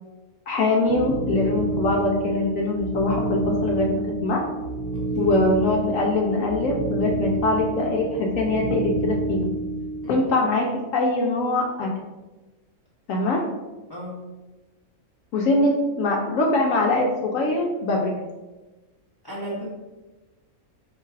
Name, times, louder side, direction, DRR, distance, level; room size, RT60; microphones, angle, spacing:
voice 1, 0.5-3.9 4.2-4.4 5.2-9.5 10.1-10.7 10.9-11.9 13.1-13.4 15.3-15.7 16.0-18.1, left 2 dB, 70° left, 0 dB, 0.9 m, -22 dB
sound 1, 0.8-10.1, right 2 dB, 55° right, 0.8 m, -28 dB
voice 2, 4.9-5.4 10.0-10.2 13.9-14.2 19.2-19.7, equal, 20° left, -8 dB, 0.7 m, -35 dB
3.9 x 2.3 x 4.5 m, 1.2 s
omnidirectional pair, 1.6 m